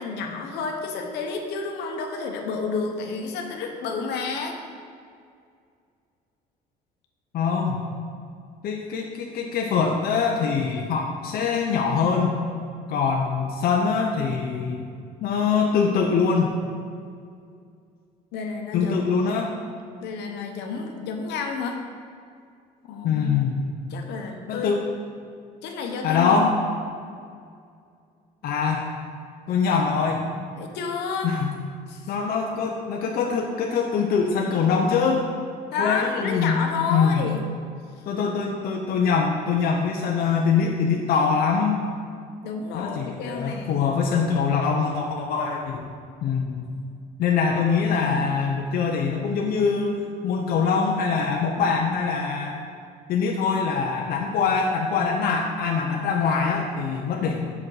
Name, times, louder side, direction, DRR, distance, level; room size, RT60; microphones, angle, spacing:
voice 1, 0.0-4.6 18.3-19.0 20.0-21.8 22.9-23.4 23.9-24.7 25.6-26.7 30.6-31.3 31.9-32.1 35.7-37.4 42.4-43.9, left 4 dB, 85° left, 3 dB, 1.1 m, -30 dB
voice 2, 7.3-7.8 8.6-12.4 12.9-14.8 15.2-16.5 18.7-19.5 23.0-23.6 24.5-24.8 26.0-26.5 28.4-28.9 29.5-30.2 31.2-31.5 32.1-35.2 35.8-36.6 36.9-37.2 38.1-41.8 42.7-45.8 46.2-46.7 47.2-52.6 53.1-57.4, left 5 dB, 65° left, 0 dB, 0.8 m, -23 dB
7.4 x 6.1 x 4.9 m, 2.3 s
cardioid pair, 110°, 17 cm